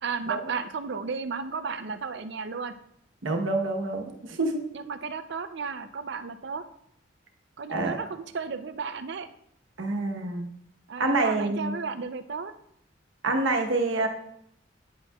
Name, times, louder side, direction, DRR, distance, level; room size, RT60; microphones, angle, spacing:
voice 1, 0.0-2.7 4.7-6.6 7.6-9.3 10.9-12.5, right 5 dB, 60° right, 10 dB, 0.5 m, -34 dB
voice 2, 3.2-4.7 7.7-8.0 9.8-10.5 11.0-11.8 13.2-14.1, right 2 dB, 85° right, 3 dB, 1.0 m, -27 dB
9.4 x 8.2 x 2.3 m, 0.73 s
head